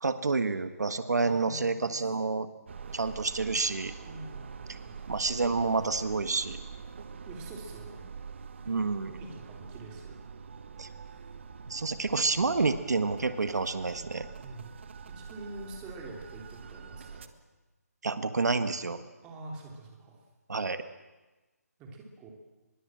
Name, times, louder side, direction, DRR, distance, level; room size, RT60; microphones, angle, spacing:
voice 1, 0.0-2.5 2.9-3.9 5.1-6.6 8.6-9.1 10.8-10.9 11.7-14.3 18.0-19.0 20.5-20.8, right 4 dB, 80° right, 10 dB, 1.6 m, -29 dB
voice 2, 1.2-2.0 4.0-5.0 7.2-8.1 9.1-10.2 14.4-14.7 15.1-17.3 19.2-20.2 21.8-22.3, right 2 dB, 10° right, 1 dB, 3.2 m, -45 dB
sound 1, 2.7-17.3, right 6 dB, 45° right, 1.5 m, -45 dB
23.5 x 22.0 x 7.7 m, 1.2 s
hypercardioid pair, 165°, 9 cm